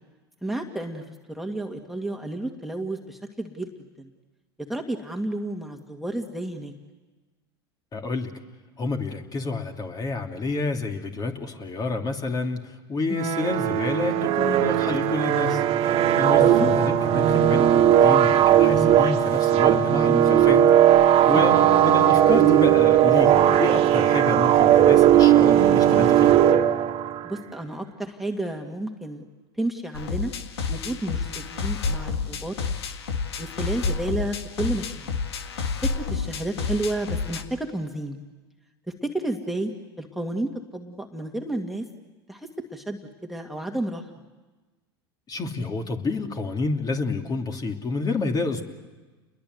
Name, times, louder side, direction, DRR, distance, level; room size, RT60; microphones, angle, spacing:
voice 1, 0.4-1.0 1.3-3.7 4.0-4.1 4.7-6.7 13.1-13.5 27.2-29.2 29.6-30.3 30.7-32.5 33.4-35.1 36.0-38.2 39.0-39.7 40.0-41.8 42.3-44.0, right 1 dB, ahead, 2 dB, 2.2 m, -31 dB
voice 2, 7.9-8.3 8.8-15.6 16.2-20.6 21.3-26.4 45.3-48.6, left 3 dB, 30° left, 3 dB, 2.9 m, -29 dB
sound 1, 13.1-27.3, right 11 dB, 45° right, 1.9 m, -18 dB
sound 2, 29.9-37.4, left 5 dB, 85° left, 1.9 m, -30 dB
29.5 x 22.0 x 8.1 m, 1.2 s
hypercardioid pair, 95°, 13 cm